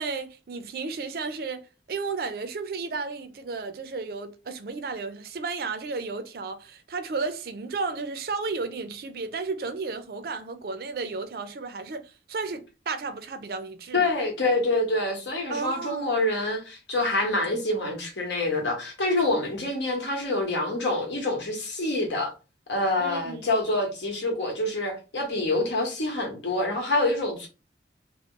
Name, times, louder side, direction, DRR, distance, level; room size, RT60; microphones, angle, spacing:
voice 1, 0.0-14.1 15.5-16.2 23.0-23.4, right 4 dB, 55° right, 0.4 m, -33 dB
voice 2, 13.9-22.3 22.7-27.5, left 2 dB, 75° left, 1.0 m, -26 dB
2.3 x 2.0 x 3.6 m
head